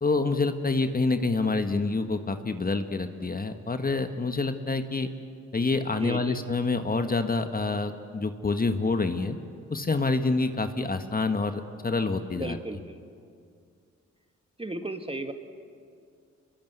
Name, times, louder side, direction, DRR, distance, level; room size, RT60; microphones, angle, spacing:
voice 1, 0.0-5.1 5.5-9.4 9.7-12.6, left 3 dB, 30° left, 7 dB, 1.6 m, -27 dB
voice 2, 6.0-6.4 12.3-13.0 14.6-15.3, right 2 dB, 20° right, 7 dB, 1.8 m, -35 dB
26.5 x 22.0 x 8.2 m, 2.3 s
cardioid pair, 70°, 30 cm